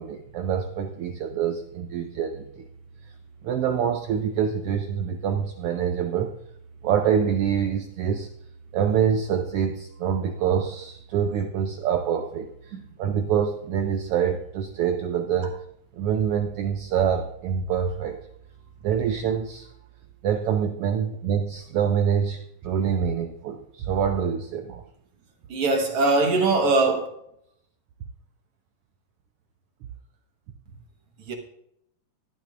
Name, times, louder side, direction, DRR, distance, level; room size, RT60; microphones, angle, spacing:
voice 1, 0.0-2.7 3.4-6.3 6.8-8.3 8.7-15.6 15.9-18.2 18.8-19.7 20.2-24.8, right 8 dB, 85° right, 1.3 m, -25 dB
voice 2, 25.5-27.1 31.3-31.4, right 3 dB, 55° right, 2.2 m, -21 dB
13.5 x 11.5 x 2.5 m
omnidirectional pair, 3.4 m